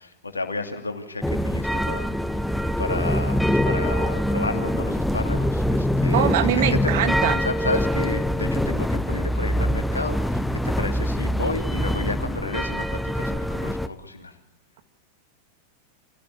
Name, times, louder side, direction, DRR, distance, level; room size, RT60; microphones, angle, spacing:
voice 1, 0.0-2.5 2.8-6.9 7.4-14.4, left 3 dB, 80° left, 5 dB, 2.8 m, -32 dB
sound 1, 1.2-13.9, equal, ahead, 0.9 m, -24 dB
voice 2, 6.1-7.4, right 10 dB, 50° right, 8 dB, 2.0 m, -23 dB
25.0 x 17.0 x 8.4 m, 0.86 s
figure-of-eight pair, 90°, 0 cm